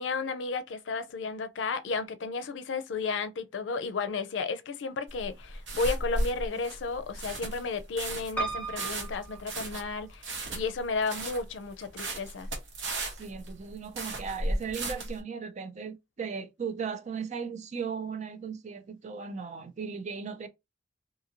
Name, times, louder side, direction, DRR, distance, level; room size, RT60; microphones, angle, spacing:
voice 1, 0.0-10.2 10.5-12.5, left 4 dB, 85° left, 0.4 m, -33 dB
sound 1, 5.1-15.2, right 1 dB, 80° right, 0.9 m, -35 dB
Piano, 8.4-10.3 11.0-11.7 12.0-12.1 12.3-12.4, right 4 dB, 10° left, 0.7 m, -37 dB
voice 2, 13.2-20.5, right 6 dB, 40° right, 0.4 m, -37 dB
2.7 x 2.5 x 2.8 m
head